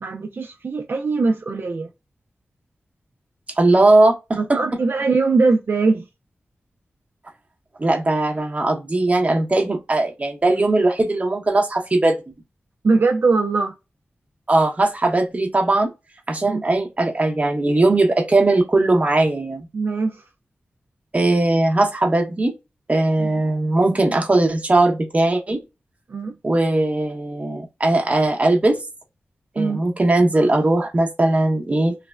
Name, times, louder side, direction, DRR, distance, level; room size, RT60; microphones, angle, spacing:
voice 1, 0.0-1.9 4.4-6.1 12.8-13.7 16.4-16.6 19.7-20.3 23.2-23.3 26.1-26.4 29.6-29.8, right 4 dB, 60° right, 0.4 m, -21 dB
voice 2, 3.6-4.6 7.8-12.2 14.5-15.9 16.3-19.6 21.1-22.5 22.9-25.6 26.4-28.8 29.5-31.9, right 2 dB, 35° right, 0.9 m, -19 dB
3.2 x 2.1 x 2.3 m
wide cardioid pair, 80°, 4 cm